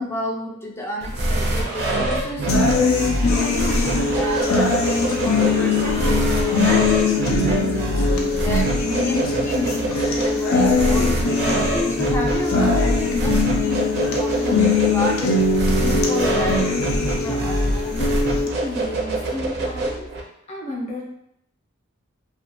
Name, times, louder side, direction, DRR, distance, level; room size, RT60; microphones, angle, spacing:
voice 1, 0.0-6.4 6.6-8.1 8.4-11.5 11.9-13.9 14.2-18.2, left 1 dB, 10° left, -1 dB, 0.3 m, -30 dB
sound 1, 1.0-20.2, right 1 dB, 50° right, 0.5 m, -25 dB
sound 2, 1.3-6.9, right 1 dB, 85° right, 0.7 m, -34 dB
sound 3, 2.5-18.5, left 3 dB, 85° left, 0.5 m, -21 dB
voice 2, 18.6-20.1 20.5-21.1, left 1 dB, 30° left, -4 dB, 0.7 m, -32 dB
2.4 x 2.4 x 2.9 m, 0.76 s
head